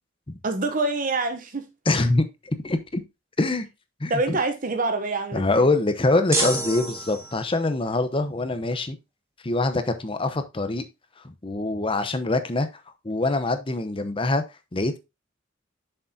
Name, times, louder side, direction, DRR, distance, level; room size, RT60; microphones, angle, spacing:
voice 1, 0.4-1.7 4.1-5.7, right 3 dB, 45° right, 0.8 m, -26 dB
voice 2, 1.9-2.2 2.6-3.0 3.4-3.7 4.0-4.4 5.3-9.0 9.4-10.8 11.2-12.7 13.0-14.4 14.7-15.0, left 2 dB, 25° left, 0.8 m, -24 dB
sound 1, 6.3-7.7, right 2 dB, 15° right, 1.6 m, -28 dB
7.4 x 6.7 x 2.7 m
head